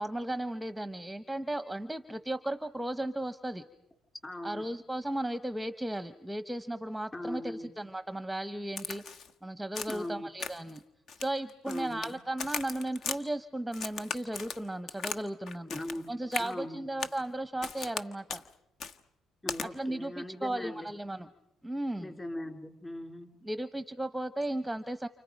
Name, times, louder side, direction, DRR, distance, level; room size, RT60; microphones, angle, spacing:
voice 1, 0.0-3.6 4.4-9.0 9.4-10.8 11.2-15.7 16.1-18.4 19.7-21.3 21.6-22.1 23.4-25.1, right 1 dB, 5° right, 10 dB, 0.9 m, -35 dB
voice 2, 4.2-4.6 7.1-7.7 9.9-10.3 11.6-12.2 15.7-16.9 19.4-20.9 22.0-23.3, left 1 dB, 20° left, 5 dB, 3.5 m, -40 dB
Crack, 8.8-9.3 9.8-10.1 10.4-10.8 11.1-12.1 12.4-13.2 13.7-15.2 15.5-16.0 16.3-16.5 17.0-17.2 17.6-18.0 18.3-18.4 18.8-19.0 19.5-19.7, left 5 dB, 60° left, 1.4 m, -38 dB
29.5 x 29.5 x 5.3 m, 0.83 s
cardioid pair, 95°, 0 cm